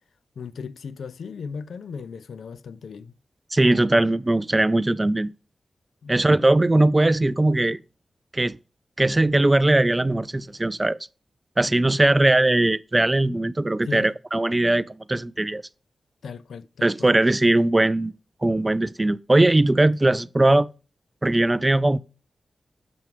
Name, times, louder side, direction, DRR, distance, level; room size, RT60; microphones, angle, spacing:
voice 1, 0.4-3.2 6.0-6.2 13.9-14.1 16.2-17.1, left 5 dB, 85° left, 0.4 m, -37 dB
voice 2, 3.5-5.3 6.1-7.8 8.3-8.6 9.0-11.0 11.6-15.6 16.8-18.1 18.4-20.7 21.2-22.0, right 2 dB, 20° right, 0.3 m, -20 dB
7.0 x 6.0 x 3.1 m
wide cardioid pair, 115°, 0 cm